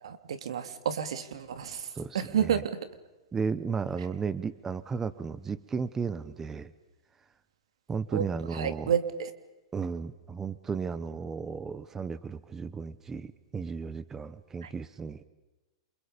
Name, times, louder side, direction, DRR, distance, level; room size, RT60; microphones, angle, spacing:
voice 1, 0.0-2.9 8.1-8.2 8.5-9.3 14.6-14.7, right 8 dB, 80° right, 10 dB, 2.9 m, -30 dB
voice 2, 1.9-2.6 3.3-6.7 7.9-8.9 9.7-15.2, right 5 dB, 15° right, 16 dB, 1.0 m, -34 dB
29.5 x 28.0 x 5.3 m, 1.1 s
hypercardioid pair, 145°, 3 cm